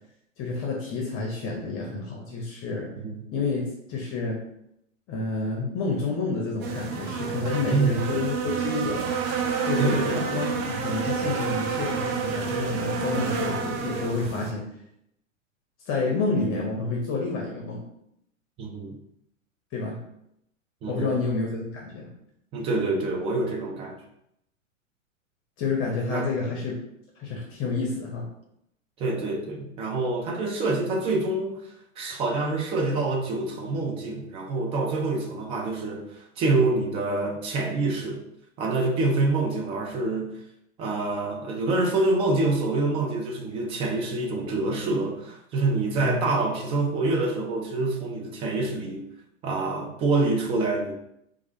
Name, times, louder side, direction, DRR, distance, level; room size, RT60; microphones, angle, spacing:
voice 1, 0.4-2.9 3.3-4.4 5.1-9.1 9.6-14.6 15.9-17.8 19.7-20.0 20.9-22.1 25.6-26.8 27.2-28.2 45.9-46.3, left 3 dB, 30° left, -1 dB, 0.8 m, -29 dB
sound 1, 6.6-14.5, right 5 dB, 45° right, 0.7 m, -29 dB
voice 2, 7.7-8.0 9.8-10.2 18.6-19.0 20.8-21.1 22.5-24.0 26.1-26.3 29.0-31.6 32.0-38.2 38.6-40.4 40.8-49.1 49.4-50.9, right 2 dB, 15° right, 2 dB, 0.3 m, -26 dB
4.5 x 2.5 x 2.7 m, 0.78 s
hypercardioid pair, 110°, 40 cm